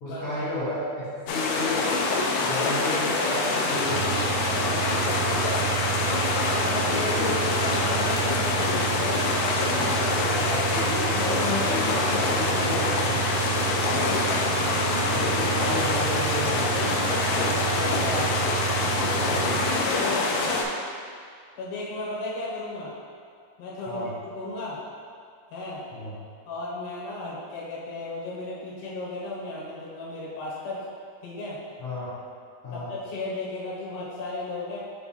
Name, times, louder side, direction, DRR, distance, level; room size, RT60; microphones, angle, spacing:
voice 1, 0.0-1.8 2.4-4.2 7.1-7.4 10.4-13.3 15.1-16.9 19.1-19.5 23.9-24.1 25.9-26.2 31.8-32.1 32.6-32.9, left 2 dB, 50° left, -11 dB, 1.9 m, -32 dB
sound 1, 1.3-20.6, left 3 dB, 90° left, 1.7 m, -25 dB
sound 2, 3.8-19.9, right 12 dB, 80° right, 2.0 m, -31 dB
voice 2, 4.5-4.8 6.6-7.3 7.6-10.3 13.8-14.0 17.5-18.3 19.8-20.3 21.6-22.9 23.6-24.1 24.4-24.8 25.5-25.8 26.5-30.9 31.2-31.6 32.7-34.8, left 2 dB, 70° left, -7 dB, 2.6 m, -34 dB
7.1 x 3.4 x 4.2 m, 2.2 s
omnidirectional pair, 4.1 m